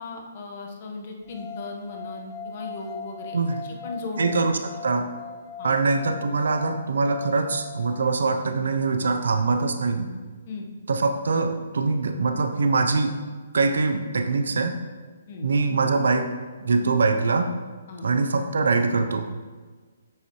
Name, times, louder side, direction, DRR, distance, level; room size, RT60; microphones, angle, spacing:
voice 1, 0.0-3.4 3.6-4.3 5.6-5.8 10.5-10.7 15.3-15.5 17.9-18.1, left 3 dB, 45° left, 1 dB, 1.3 m, -37 dB
sound 1, 1.3-8.4, left 6 dB, 20° left, 0.7 m, -40 dB
voice 2, 4.2-4.5 4.8-5.1 5.6-10.1 10.9-13.2 13.5-14.8 15.4-16.3 16.6-17.5 18.0-19.3, right 4 dB, 80° right, 7 dB, 0.7 m, -23 dB
8.8 x 6.5 x 3.2 m, 1.4 s
hypercardioid pair, 160°, 0 cm